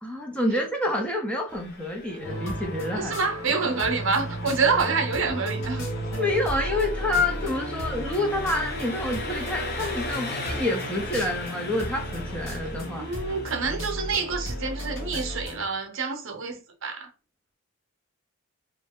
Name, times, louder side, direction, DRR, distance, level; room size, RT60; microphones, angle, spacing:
voice 1, 0.0-3.2 6.2-13.1, left 1 dB, 5° left, 0.5 m, -28 dB
Engine, 1.5-15.5, left 3 dB, 45° left, 0.6 m, -40 dB
sound 1, 2.2-15.7, equal, 65° left, 1.3 m, -34 dB
sound 2, 2.2-14.2, right 1 dB, 10° right, 0.9 m, -45 dB
voice 2, 2.9-5.9 13.0-17.1, right 4 dB, 60° right, 0.8 m, -27 dB
3.0 x 2.7 x 3.5 m
head